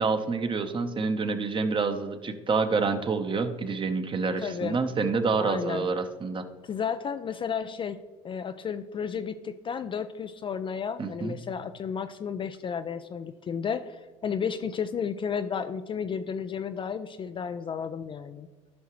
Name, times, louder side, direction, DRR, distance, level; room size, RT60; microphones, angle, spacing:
voice 1, 0.0-6.4 11.0-11.3, right 4 dB, 30° right, 8 dB, 1.0 m, -27 dB
voice 2, 4.4-4.8 5.4-5.8 6.6-8.0 8.2-18.5, left 7 dB, 30° left, 10 dB, 0.4 m, -32 dB
14.5 x 5.6 x 3.1 m, 1.3 s
hypercardioid pair, 70°, 17 cm